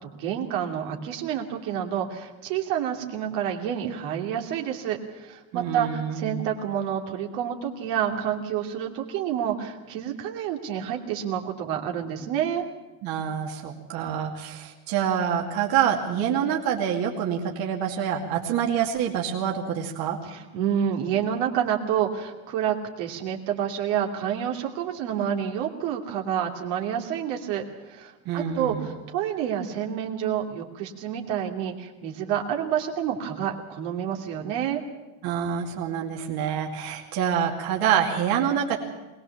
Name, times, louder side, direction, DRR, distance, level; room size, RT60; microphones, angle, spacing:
voice 1, 0.0-12.7 20.2-34.8, right 9 dB, 75° right, 2 dB, 2.8 m, -29 dB
voice 2, 5.5-6.4 13.0-20.2 28.3-28.9 35.2-38.8, right 8 dB, 55° right, 1 dB, 2.5 m, -26 dB
21.5 x 19.5 x 7.2 m, 1.2 s
cardioid pair, 150°, 43 cm